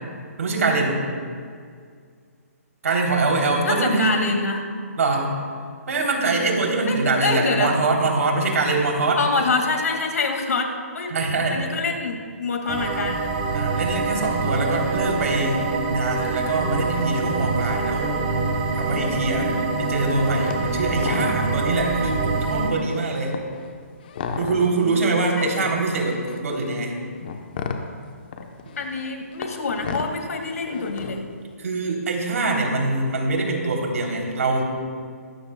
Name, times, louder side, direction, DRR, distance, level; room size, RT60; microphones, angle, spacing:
voice 1, 0.4-1.0 2.8-4.2 5.0-5.3 5.9-9.2 11.1-11.6 13.5-18.1 18.8-23.3 24.4-26.9 31.6-34.6, right 3 dB, 65° right, 0 dB, 3.4 m, -23 dB
voice 2, 3.6-4.7 6.8-7.7 9.2-11.1 11.5-13.3 19.5-19.7 24.5-25.5 28.8-31.2, left 4 dB, 75° left, 3 dB, 2.2 m, -26 dB
sound 1, 12.7-22.7, right 3 dB, 25° right, 1.6 m, -25 dB
sound 2, 20.5-20.7 20.9-21.7 22.1-22.2 22.5-24.9 25.5-31.3, left 5 dB, 35° left, 1.0 m, -34 dB
20.5 x 16.5 x 2.3 m, 2.1 s
hypercardioid pair, 170°, 8 cm